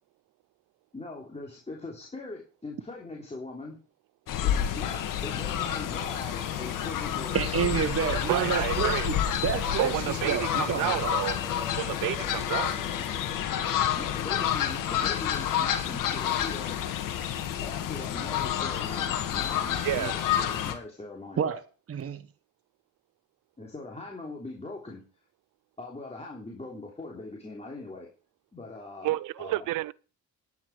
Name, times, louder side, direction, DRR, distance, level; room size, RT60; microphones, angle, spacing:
voice 1, 0.9-3.8 4.4-7.8 14.0-16.8 17.6-21.4 23.6-25.0 25.8-28.1 28.5-29.7, left 2 dB, 20° left, 3.4 m, -41 dB
Fowl, 4.3-20.7, left 10 dB, 80° left, 1.9 m, -29 dB
sound 1, 5.9-14.5, right 1 dB, 10° right, 2.8 m, -46 dB
voice 2, 7.3-11.1 21.4-21.6 21.9-22.2, right 7 dB, 45° right, 1.3 m, -29 dB
voice 3, 8.3-9.1 9.8-11.4 11.8-12.7 19.8-20.1 29.0-29.9, right 16 dB, 85° right, 0.6 m, -30 dB
10.5 x 9.3 x 4.9 m
cardioid pair, 90°, 32 cm